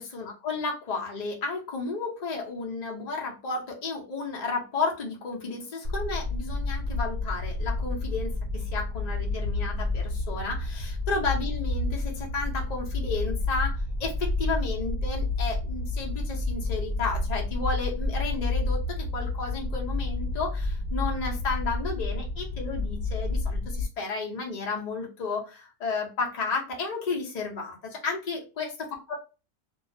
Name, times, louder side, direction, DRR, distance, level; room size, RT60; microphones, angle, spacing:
voice 1, 0.0-29.1, left 4 dB, 80° left, -1 dB, 0.3 m, -33 dB
sound 1, 5.8-23.8, left 2 dB, 45° right, 0.8 m, -30 dB
2.5 x 2.3 x 2.5 m, 0.32 s
omnidirectional pair, 1.7 m